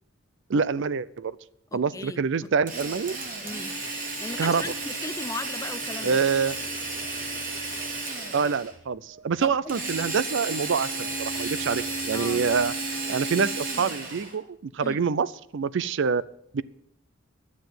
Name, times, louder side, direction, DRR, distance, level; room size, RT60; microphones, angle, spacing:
voice 1, 0.5-1.4 1.7-3.2 4.4-4.6 6.0-6.5 8.3-12.7 13.1-16.2 16.5-16.6, right 5 dB, 65° right, 19 dB, 0.5 m, -26 dB
voice 2, 1.7-2.2 3.4-3.7 4.2-6.2 9.4-9.7 12.1-12.4 14.8-15.0, left 3 dB, 15° left, 10 dB, 0.5 m, -37 dB
Drill, 2.7-8.7 9.7-14.4, right 3 dB, 45° right, 2.5 m, -33 dB
Telephone, 4.3-12.9, right 3 dB, 80° right, 2.9 m, -53 dB
12.0 x 7.3 x 7.6 m, 0.77 s
head